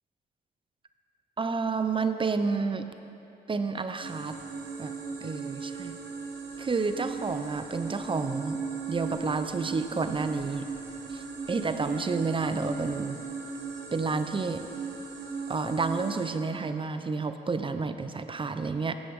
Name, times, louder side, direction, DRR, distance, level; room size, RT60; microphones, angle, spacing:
voice 1, 1.4-2.9 3.5-4.4 4.8-4.9 5.2-6.0 6.6-8.6 8.9-10.7 11.1-13.2 13.9-14.7 15.5-18.9, right 4 dB, 30° right, 9 dB, 0.6 m, -30 dB
sound 1, 4.0-16.3, right 5 dB, 75° right, 1.3 m, -37 dB
12.5 x 8.2 x 3.7 m, 2.9 s
supercardioid pair, 55°, 17 cm